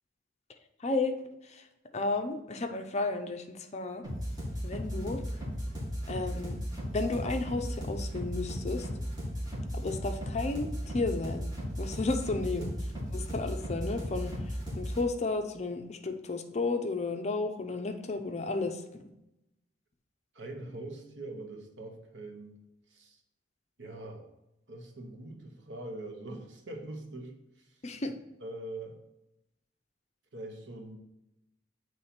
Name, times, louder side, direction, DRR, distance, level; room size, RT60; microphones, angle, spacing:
voice 1, 0.8-1.1 1.4-1.7 1.9-4.0 4.6-5.2 6.1-6.6 6.9-8.9 9.7-11.5 11.8-12.7 13.1-19.1 27.8-28.1, left 3 dB, 35° left, 6 dB, 0.5 m, -33 dB
sound 1, 4.0-15.0, equal, 20° right, 1.8 m, -36 dB
voice 2, 20.3-22.6 22.9-23.2 23.8-24.3 24.7-27.8 28.4-29.0 30.3-31.0, right 2 dB, 75° right, 3 dB, 1.1 m, -43 dB
8.1 x 3.2 x 4.3 m, 0.89 s
head